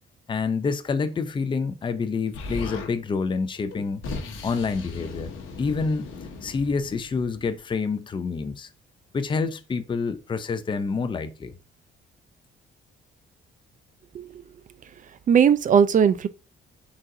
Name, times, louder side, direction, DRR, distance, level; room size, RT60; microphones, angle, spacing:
voice 1, 0.3-4.0 4.4-5.3 5.6-6.1 6.4-8.7 9.1-11.5, left 4 dB, 25° left, 0.5 m, -27 dB
Explosion, 2.3-2.9 3.7-7.6, left 3 dB, 85° left, 0.9 m, -37 dB
voice 2, 15.3-16.3, right 7 dB, 40° right, 0.4 m, -18 dB
4.0 x 3.8 x 2.5 m
cardioid pair, 90°, 20 cm